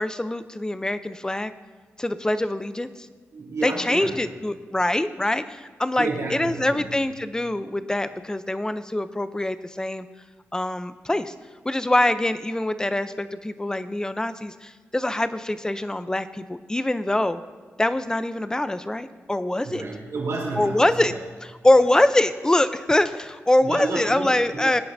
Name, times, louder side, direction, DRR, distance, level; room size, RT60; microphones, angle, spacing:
voice 1, 0.0-1.5 2.0-2.9 3.6-10.1 10.5-11.3 11.6-17.4 17.8-19.8 20.6-21.1 21.4-24.8, left 1 dB, 15° left, 11 dB, 0.6 m, -24 dB
voice 2, 3.3-4.1 6.0-6.9 19.6-21.2 23.6-24.8, right 3 dB, 80° right, -4 dB, 3.6 m, -31 dB
20.5 x 9.3 x 2.7 m, 1.5 s
wide cardioid pair, 90°, 5 cm